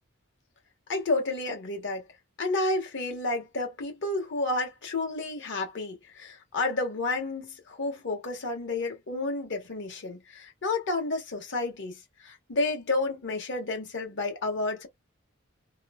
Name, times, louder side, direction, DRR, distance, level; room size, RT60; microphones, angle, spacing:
voice 1, 0.9-2.0 2.4-14.9, left 2 dB, 60° left, 1.1 m, -31 dB
3.0 x 2.0 x 2.3 m
head